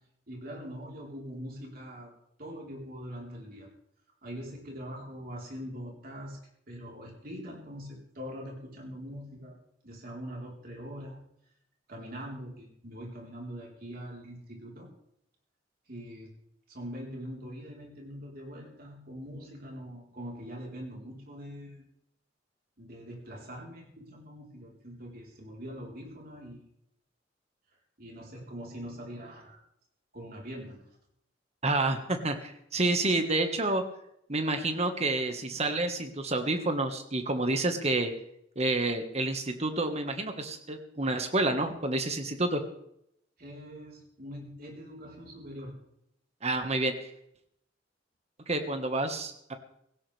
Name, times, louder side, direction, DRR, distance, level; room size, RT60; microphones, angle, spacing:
voice 1, 0.3-2.1 2.4-3.7 4.2-6.4 6.7-11.2 11.9-14.9 15.9-16.3 16.7-21.9 22.8-26.6 28.0-29.6 30.1-30.9 43.4-45.8, equal, 55° right, -1 dB, 4.2 m, -43 dB
voice 2, 31.6-33.8 34.3-38.1 38.6-42.6 46.4-46.9 48.5-49.5, right 2 dB, 35° right, 6 dB, 1.7 m, -29 dB
17.0 x 16.5 x 3.5 m, 0.75 s
head